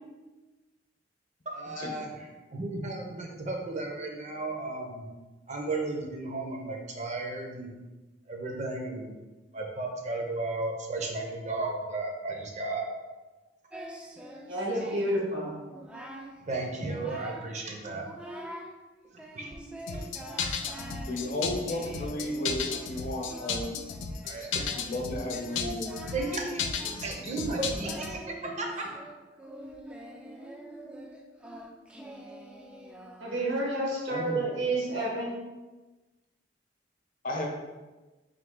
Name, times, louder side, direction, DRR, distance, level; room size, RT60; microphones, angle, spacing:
voice 1, 1.5-5.1 5.5-7.7 8.3-9.1 9.5-12.8 14.7-14.9 16.4-18.0 19.1-19.5 19.9-20.1 20.4-20.5 24.2-24.9 25.5-25.8 26.1-28.9, right 2 dB, 40° right, 1 dB, 0.7 m, -34 dB
Singing, 13.7-15.2 15.6-16.4 16.7-17.5 17.9-18.7 19.2-33.7, right 1 dB, 5° right, 0.3 m, -45 dB
voice 2, 14.4-15.5 33.2-35.4, right 1 dB, 75° right, -3 dB, 1.2 m, -29 dB
sound 1, 19.9-28.1, left 6 dB, 75° left, 0.4 m, -34 dB
voice 3, 21.1-23.7 24.7-25.9 34.1-34.4 37.2-37.5, left 1 dB, 50° left, 0 dB, 0.7 m, -33 dB
3.8 x 2.7 x 3.7 m, 1.2 s
head